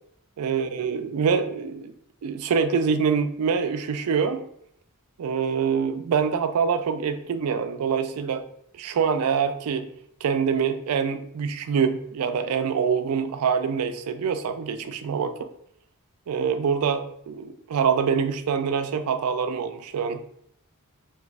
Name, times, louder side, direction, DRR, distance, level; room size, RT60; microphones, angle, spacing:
voice 1, 0.4-1.9 2.2-4.5 5.2-8.4 8.7-9.9 10.2-15.5 16.3-20.2, right 6 dB, 90° right, 9 dB, 0.4 m, -25 dB
2.9 x 2.4 x 3.2 m, 0.70 s
head